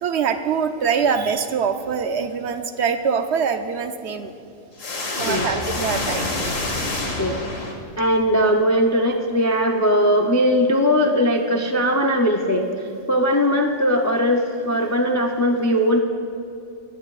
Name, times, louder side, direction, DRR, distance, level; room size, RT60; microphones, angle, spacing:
voice 1, 0.0-4.3 5.2-6.3, right 6 dB, 65° right, 8 dB, 0.8 m, -23 dB
sound 1, 4.8-8.2, left 2 dB, 85° left, 1.7 m, -27 dB
voice 2, 8.0-16.0, equal, 25° left, 2 dB, 0.3 m, -19 dB
20.0 x 10.0 x 2.4 m, 2.7 s
omnidirectional pair, 1.3 m